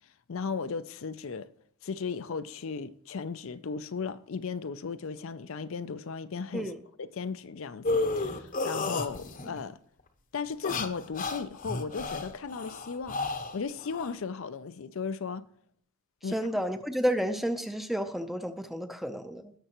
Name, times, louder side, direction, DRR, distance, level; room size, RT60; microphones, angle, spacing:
voice 1, 0.3-1.5 1.8-6.7 7.0-9.8 10.3-13.2 13.5-15.5 16.2-16.5, left 5 dB, 60° left, 0.5 m, -36 dB
sound 1, 7.8-9.6 10.5-14.1, left 3 dB, 35° left, 0.8 m, -32 dB
voice 2, 16.2-19.5, equal, ahead, 0.6 m, -31 dB
18.0 x 6.7 x 3.0 m
head